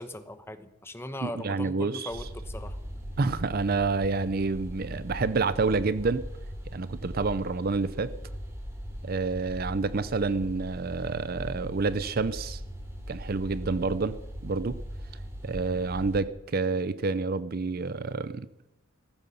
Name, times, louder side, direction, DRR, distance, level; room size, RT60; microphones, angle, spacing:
voice 1, 0.0-2.8, left 1 dB, 10° left, 1.0 m, -39 dB
voice 2, 1.2-2.1 3.2-6.2 6.7-8.1 9.0-12.6 13.1-14.2 14.4-14.8 15.4-18.5, right 4 dB, 45° right, 0.6 m, -28 dB
sound 1, 2.1-16.2, equal, 15° right, 3.0 m, -39 dB
17.0 x 14.5 x 5.7 m
head